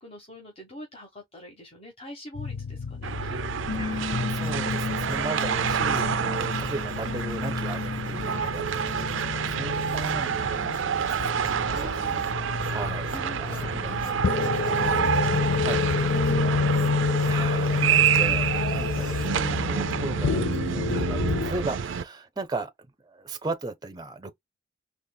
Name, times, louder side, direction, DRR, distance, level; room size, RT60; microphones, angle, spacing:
voice 1, 0.0-4.1 8.2-8.6 9.1-9.7 11.6-12.2 13.1-16.7 20.7-20.8, equal, 30° left, 1.2 m, -45 dB
sound 1, 2.4-21.5, left 4 dB, 60° left, 0.5 m, -29 dB
sound 2, 3.0-22.0, right 8 dB, 70° right, 0.5 m, -28 dB
voice 2, 3.7-8.6 9.0-9.1 9.5-12.2 12.7-14.0 15.6-15.8 16.9-22.7 23.0-24.3, right 2 dB, 20° right, 0.6 m, -36 dB
sound 3, 4.4-20.0, left 1 dB, 45° left, 2.3 m, -54 dB
4.2 x 3.1 x 2.2 m
head